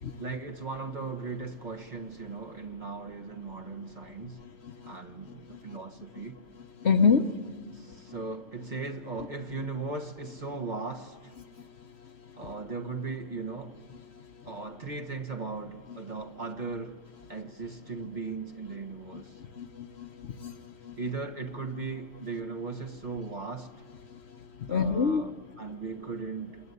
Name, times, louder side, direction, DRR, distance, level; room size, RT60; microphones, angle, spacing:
voice 1, 0.2-4.4 4.8-6.4 7.7-11.3 12.4-13.8 14.4-17.0 17.3-19.4 21.0-23.7 24.7-26.6, right 4 dB, 35° right, 1.4 m, -38 dB
voice 2, 6.8-7.3 19.1-19.2 19.6-20.5 20.8-20.9 24.7-25.2, left 5 dB, 55° left, 1.2 m, -25 dB
28.5 x 21.5 x 9.7 m
omnidirectional pair, 1.4 m